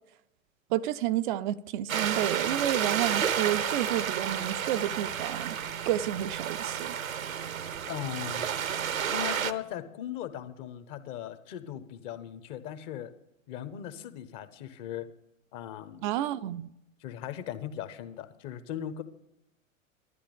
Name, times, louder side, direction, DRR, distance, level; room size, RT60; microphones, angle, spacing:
voice 1, 0.7-5.6 5.9-6.9 16.0-16.7, right 12 dB, 40° right, 0.5 m, -30 dB
sound 1, 1.9-9.5, right 8 dB, 75° right, 0.9 m, -31 dB
voice 2, 7.9-8.5 9.1-13.1 13.5-15.1 15.5-16.1 17.0-19.0, left 10 dB, 40° left, 1.2 m, -38 dB
13.0 x 10.5 x 5.3 m
figure-of-eight pair, 90°, 41 cm